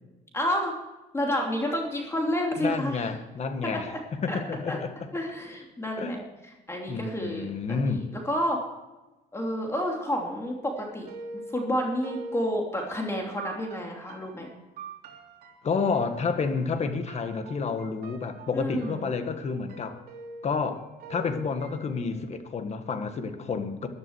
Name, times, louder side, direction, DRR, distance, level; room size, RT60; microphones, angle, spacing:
voice 1, 0.3-0.8 1.1-3.0 3.6-4.0 4.3-4.4 4.7-4.8 5.1-6.2 6.7-8.6 9.3-11.1 11.5-14.5 18.5-19.1, equal, 15° left, 0 dB, 2.9 m, -30 dB
voice 2, 2.6-5.1 6.0-6.1 6.9-8.1 15.6-20.0 20.4-23.9, left 5 dB, 40° left, 8 dB, 1.7 m, -30 dB
sound 1, 10.8-22.3, right 3 dB, 65° right, 3.3 m, -45 dB
14.0 x 12.0 x 4.7 m, 1.1 s
cardioid pair, 110°, 17 cm